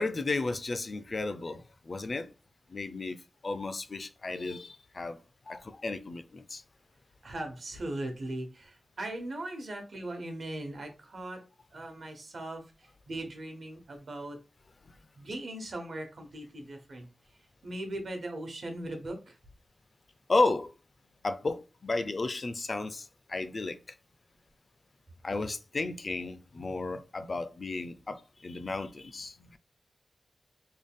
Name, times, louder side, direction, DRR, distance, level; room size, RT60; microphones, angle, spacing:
voice 1, 0.0-2.3 2.7-3.2 3.4-5.2 5.5-6.6 20.3-20.7 21.2-23.8 25.2-29.6, left 3 dB, 40° left, 0.3 m, -33 dB
voice 2, 7.2-11.4 11.7-14.4 15.2-17.1 17.6-19.4, right 1 dB, 60° right, 1.0 m, -39 dB
3.5 x 2.3 x 3.6 m
wide cardioid pair, 130°, 0 cm